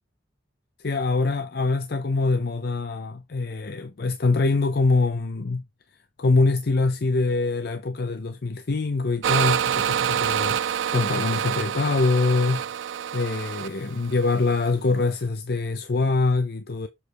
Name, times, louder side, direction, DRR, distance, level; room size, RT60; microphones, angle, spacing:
voice 1, 0.8-5.7 6.2-12.6 13.1-16.9, left 3 dB, 55° left, 0.5 m, -24 dB
sound 1, 9.2-14.7, right 9 dB, 80° right, 0.4 m, -27 dB
7.1 x 3.2 x 4.6 m
head